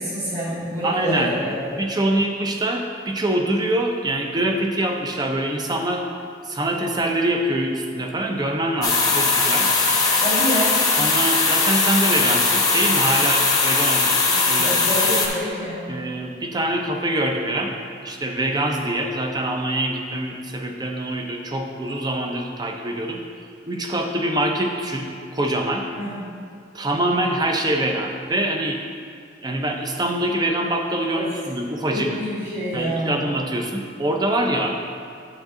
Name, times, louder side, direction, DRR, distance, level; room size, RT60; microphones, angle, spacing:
voice 1, 0.0-1.8 10.2-10.8 14.6-15.9 25.9-26.2 31.1-31.2 31.9-33.2, equal, 60° right, -11 dB, 2.1 m, -27 dB
voice 2, 0.8-6.0 6.4-9.7 11.0-15.0 15.9-17.7 18.0-25.9 26.7-28.8 29.4-32.1 32.7-34.8, right 1 dB, 20° right, 3 dB, 0.5 m, -24 dB
sound 1, 8.8-15.3, left 4 dB, 20° left, 0.8 m, -19 dB
8.8 x 6.2 x 3.7 m, 2.4 s
head